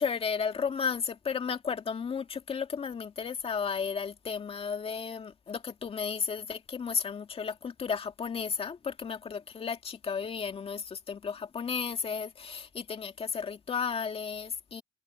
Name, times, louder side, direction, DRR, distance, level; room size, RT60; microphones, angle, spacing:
voice 1, 0.0-14.8, left 6 dB, 35° left, 2.2 m, -33 dB
cardioid pair, 110°, 17 cm